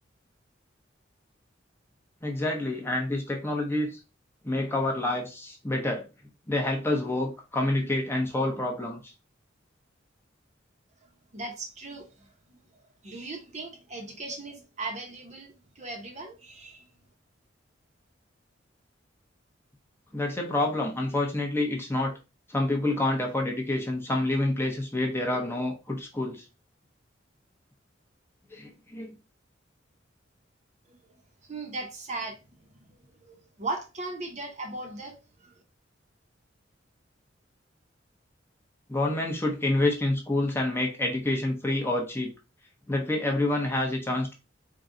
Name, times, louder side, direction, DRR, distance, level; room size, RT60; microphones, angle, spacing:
voice 1, 2.2-4.0 4.4-6.1 6.5-9.1 20.1-22.1 22.5-26.4 28.5-29.1 38.9-42.3 42.9-44.3, left 2 dB, 15° left, 0.7 m, -28 dB
voice 2, 11.3-12.6 13.0-16.8 30.9-31.0 31.5-35.5, right 2 dB, 40° right, 0.8 m, -38 dB
3.7 x 2.3 x 3.8 m
head